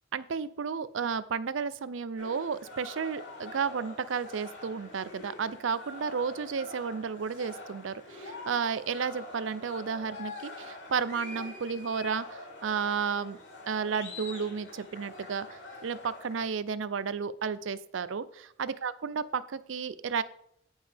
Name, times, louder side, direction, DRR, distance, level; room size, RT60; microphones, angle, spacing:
voice 1, 0.1-13.4 13.7-20.2, right 6 dB, 90° right, 15 dB, 0.5 m, -32 dB
sound 1, 2.2-16.4, left 2 dB, 75° left, 3.0 m, -45 dB
14.5 x 5.4 x 3.5 m, 0.72 s
head